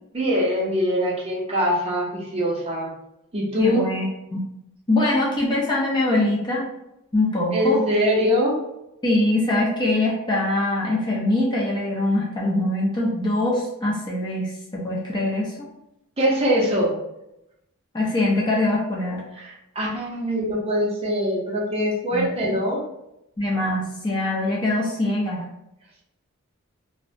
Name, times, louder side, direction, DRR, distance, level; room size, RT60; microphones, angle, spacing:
voice 1, 0.1-2.9 3.3-3.9 7.5-8.6 16.2-17.0 19.3-22.8, equal, 25° right, -4 dB, 0.6 m, -23 dB
voice 2, 3.6-4.1 4.3-4.4 4.9-6.7 7.1-7.8 9.0-15.7 17.9-19.2 22.1-22.5 23.4-25.4, left 1 dB, 20° left, -4 dB, 0.5 m, -23 dB
2.6 x 2.1 x 2.6 m, 0.85 s
head